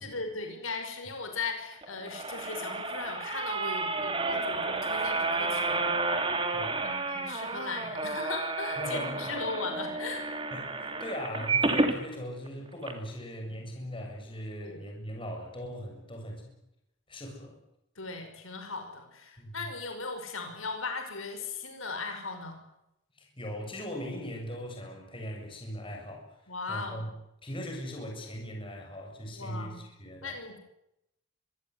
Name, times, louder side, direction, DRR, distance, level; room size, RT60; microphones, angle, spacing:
voice 1, 0.0-5.9 6.8-10.2 14.6-14.8 18.0-22.6 26.5-27.0 29.3-29.8 30.2-30.6, left 4 dB, 85° left, 5 dB, 5.5 m, -38 dB
sound 1, 1.8-12.0 12.5-12.6 12.8-12.9, right 3 dB, 25° right, 2.8 m, -31 dB
voice 2, 6.5-6.9 8.8-9.2 10.5-16.5 17.1-17.6 19.4-19.7 23.2-26.4 26.7-27.1 27.4-30.4, equal, 25° left, 2 dB, 7.4 m, -39 dB
24.5 x 19.0 x 9.7 m, 0.84 s
head